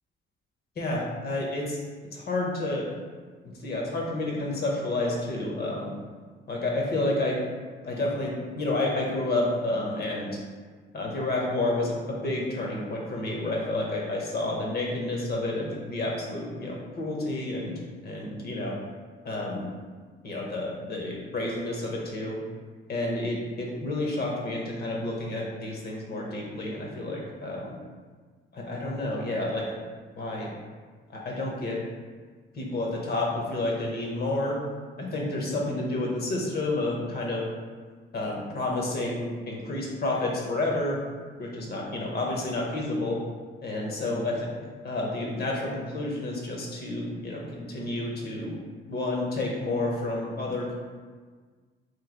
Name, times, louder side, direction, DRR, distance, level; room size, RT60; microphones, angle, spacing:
voice 1, 0.8-1.8 2.1-2.9 3.6-5.9 6.5-7.4 7.8-10.3 10.9-17.7 18.0-18.7 19.2-19.7 20.2-22.4 22.9-27.8 28.5-29.6 30.2-30.5 31.1-31.8 32.6-34.6 35.0-37.4 38.1-41.0 41.4-43.2 43.6-44.5 44.8-48.6 48.9-50.7, left 2 dB, 55° left, -2 dB, 1.0 m, -30 dB
3.2 x 2.7 x 3.8 m, 1.5 s
cardioid pair, 90°, 20 cm